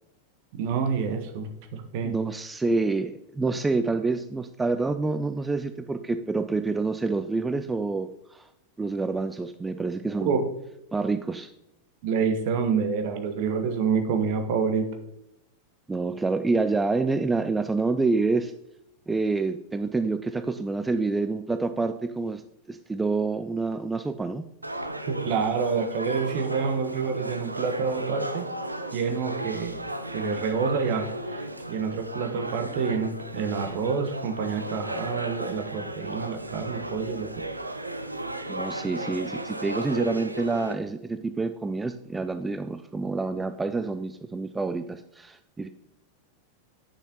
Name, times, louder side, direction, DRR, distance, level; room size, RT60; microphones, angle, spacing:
voice 1, 0.5-2.1 10.2-10.4 12.0-14.9 25.1-28.5 28.9-29.8 30.1-37.3, right 5 dB, 50° right, 7 dB, 1.0 m, -28 dB
voice 2, 2.0-8.5 8.8-10.4 10.9-11.5 15.9-18.5 19.1-22.4 22.7-24.4 38.5-45.7, right 3 dB, 10° right, 9 dB, 0.3 m, -27 dB
sound 1, 24.6-40.7, right 1 dB, 85° right, 0.5 m, -35 dB
8.3 x 6.6 x 2.9 m, 0.83 s
figure-of-eight pair, 90°, 0 cm